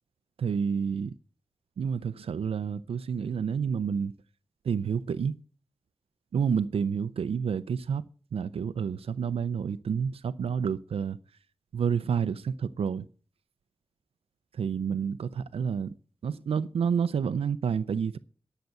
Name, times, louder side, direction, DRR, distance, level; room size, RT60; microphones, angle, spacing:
voice 1, 0.4-1.1 1.8-4.1 4.6-5.3 6.3-8.0 8.3-11.2 11.7-13.1 14.5-15.9 16.2-18.2, right 6 dB, 85° right, 0.5 m, -29 dB
10.5 x 6.7 x 7.8 m
wide cardioid pair, 135°, 10 cm